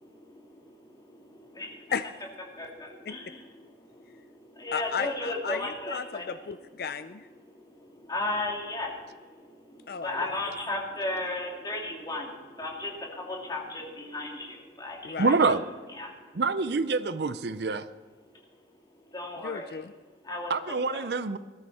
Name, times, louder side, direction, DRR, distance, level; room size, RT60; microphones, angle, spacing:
voice 1, 0.9-1.9 2.5-6.2 7.4-15.4 16.0-16.4 19.1-19.8 20.2-20.5 20.9-21.1, left 2 dB, 25° left, -1 dB, 2.9 m, -35 dB
voice 2, 4.7-7.3 9.9-10.3 15.0-15.3 19.4-19.9, left 6 dB, 60° left, 11 dB, 0.5 m, -34 dB
voice 3, 15.2-15.6 16.3-17.9 20.5-21.4, right 4 dB, 65° right, 14 dB, 0.6 m, -26 dB
20.0 x 13.0 x 4.3 m, 1.4 s
head